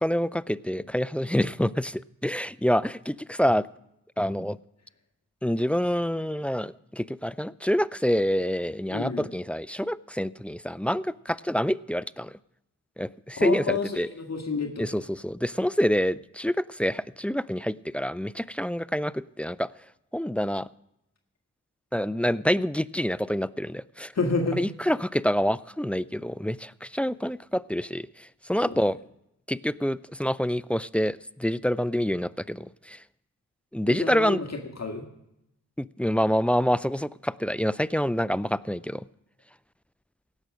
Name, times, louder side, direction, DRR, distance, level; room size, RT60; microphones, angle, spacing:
voice 1, 0.0-3.7 4.2-4.6 5.4-12.3 13.0-14.1 14.8-19.7 20.1-20.7 21.9-24.1 24.6-28.1 28.5-29.0 29.5-33.0 33.7-34.4 35.8-39.0, equal, 5° left, 19 dB, 0.3 m, -27 dB
voice 2, 8.9-9.3 13.4-15.0 24.1-24.6 28.6-28.8 33.9-35.1, left 4 dB, 50° left, 3 dB, 1.7 m, -30 dB
17.0 x 6.1 x 6.4 m, 0.83 s
cardioid pair, 50°, 33 cm